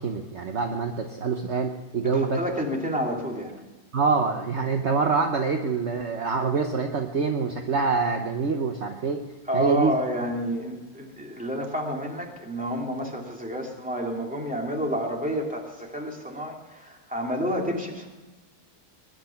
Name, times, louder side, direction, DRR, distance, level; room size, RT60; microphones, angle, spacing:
voice 1, 0.0-2.4 3.9-9.2 9.5-9.9, right 4 dB, 50° right, 4 dB, 1.2 m, -25 dB
voice 2, 2.0-3.5 9.5-18.1, equal, 5° right, 0 dB, 2.5 m, -30 dB
21.5 x 11.0 x 5.8 m, 1.2 s
omnidirectional pair, 1.6 m